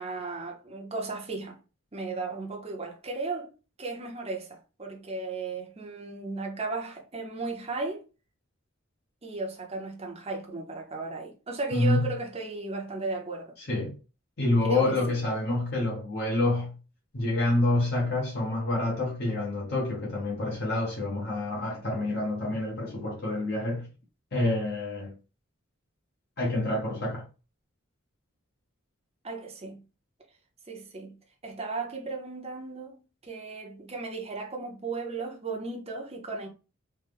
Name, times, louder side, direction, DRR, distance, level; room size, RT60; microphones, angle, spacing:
voice 1, 0.0-1.6 1.9-3.5 3.8-8.0 9.2-13.5 14.6-15.0 29.2-29.8 30.7-31.2 31.4-36.5, right 3 dB, 30° right, 0.7 m, -35 dB
voice 2, 11.7-12.1 13.7-13.9 14.4-16.8 17.1-23.9 24.3-25.1 26.4-27.2, left 2 dB, 50° left, 0.9 m, -27 dB
3.3 x 2.2 x 3.4 m
head